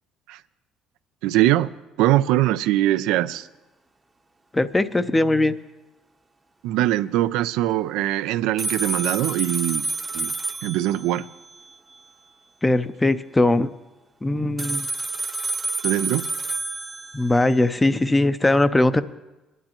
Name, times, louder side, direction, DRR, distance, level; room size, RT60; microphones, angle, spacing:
voice 1, 1.2-1.7 2.0-3.5 6.6-9.9 10.1-10.3 10.6-11.3 15.8-16.3, right 14 dB, 80° right, 0.3 m, -22 dB
voice 2, 4.5-5.5 12.6-13.7 14.2-14.9 17.1-19.0, left 2 dB, 15° left, 0.5 m, -20 dB
sound 1, 8.6-12.0 14.6-18.0, right 3 dB, 20° right, 0.7 m, -29 dB
21.5 x 11.0 x 3.0 m
supercardioid pair, 80°, 0 cm